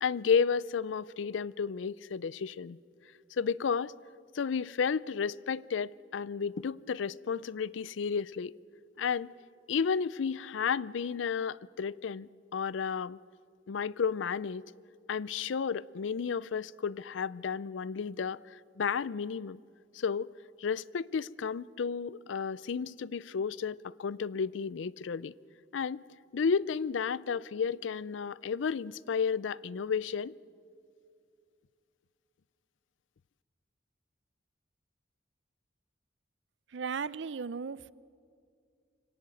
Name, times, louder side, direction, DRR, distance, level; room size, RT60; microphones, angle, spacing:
voice 1, 0.0-2.8 3.4-3.9 4.3-8.6 9.0-9.3 9.7-13.2 13.7-14.7 15.1-19.6 19.9-20.3 20.6-25.3 25.7-26.0 26.3-30.3, left 6 dB, 85° left, 0.4 m, -32 dB
voice 2, 36.7-37.9, right 5 dB, 75° right, 0.5 m, -36 dB
25.0 x 17.5 x 7.8 m
head